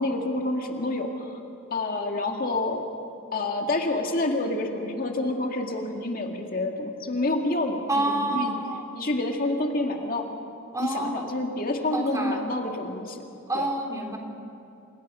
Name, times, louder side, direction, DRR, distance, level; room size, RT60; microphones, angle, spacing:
voice 1, 0.0-1.4 1.7-2.8 3.3-8.6 8.9-10.3 10.8-13.2 13.5-13.7, left 2 dB, 45° left, 2 dB, 2.0 m, -28 dB
voice 2, 7.9-9.0 10.7-11.3 11.9-12.4 13.5-14.2, right 2 dB, 15° right, 2 dB, 3.2 m, -28 dB
29.5 x 29.0 x 5.6 m, 2.7 s
head